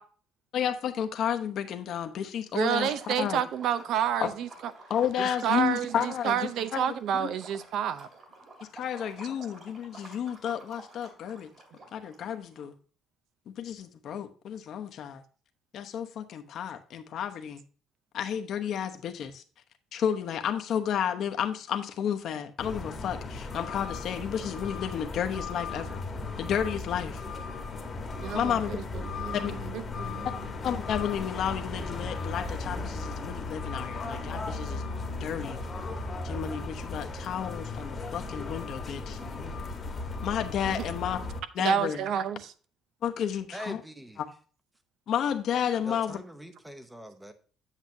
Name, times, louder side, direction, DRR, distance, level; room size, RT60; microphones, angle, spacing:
voice 1, 0.5-3.4 4.2-4.3 4.9-6.4 6.7-6.8 7.2-7.3 8.6-11.5 11.9-12.7 13.5-15.2 15.7-17.6 18.1-19.4 19.9-26.0 26.4-27.2 28.3-28.8 29.3-29.5 30.6-34.8 35.2-35.6 36.2-39.2 40.2-41.2 41.5-42.0 43.0-43.8 45.1-46.2, left 9 dB, 50° left, 0.9 m, -31 dB
voice 2, 2.5-4.5 5.4-8.1 28.2-30.5 40.7-40.9 41.6-42.5, right 8 dB, 60° right, 0.6 m, -30 dB
Liquid, 2.8-12.6, right 2 dB, 40° right, 2.4 m, -50 dB
sound 1, 22.6-41.4, left 3 dB, 25° left, 1.2 m, -36 dB
voice 3, 43.5-44.2 45.8-47.3, equal, 5° right, 0.8 m, -42 dB
8.3 x 7.2 x 2.7 m
cardioid pair, 150°, 0 cm